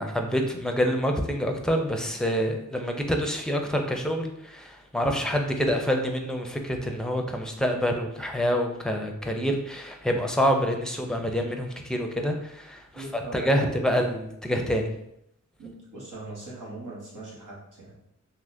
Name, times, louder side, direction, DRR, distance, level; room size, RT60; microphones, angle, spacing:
voice 1, 0.0-14.9, equal, ahead, 3 dB, 0.5 m, -27 dB
voice 2, 12.9-13.7 15.6-17.9, right 2 dB, 85° right, -5 dB, 1.2 m, -40 dB
3.6 x 2.8 x 2.6 m, 0.78 s
wide cardioid pair, 55°, 31 cm